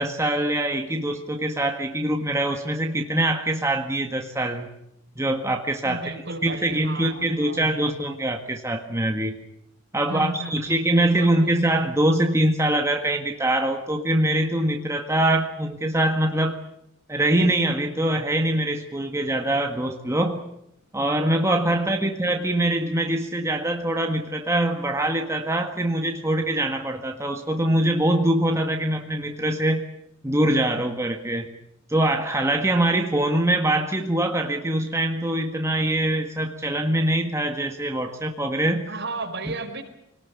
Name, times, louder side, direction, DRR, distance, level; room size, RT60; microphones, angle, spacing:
voice 1, 0.0-4.7 5.2-9.3 9.9-16.6 17.1-20.4 20.9-29.9 30.2-31.5 31.9-38.9 39.5-39.6, right 1 dB, 15° right, 3 dB, 1.7 m, -23 dB
voice 2, 5.8-7.9 10.1-11.6 21.6-22.1 38.9-39.8, right 2 dB, 60° right, 3 dB, 4.8 m, -35 dB
26.0 x 19.0 x 9.5 m, 0.79 s
head